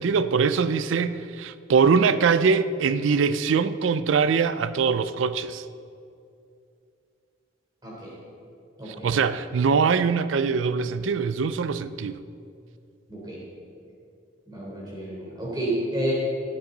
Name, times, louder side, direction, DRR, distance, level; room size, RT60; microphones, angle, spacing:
voice 1, 0.0-5.6 8.9-12.2, right 5 dB, 85° right, 0.4 m, -23 dB
voice 2, 7.8-8.1 8.8-9.3 13.1-13.4 14.5-16.1, right 1 dB, 20° right, 3.3 m, -31 dB
15.5 x 9.1 x 3.9 m
head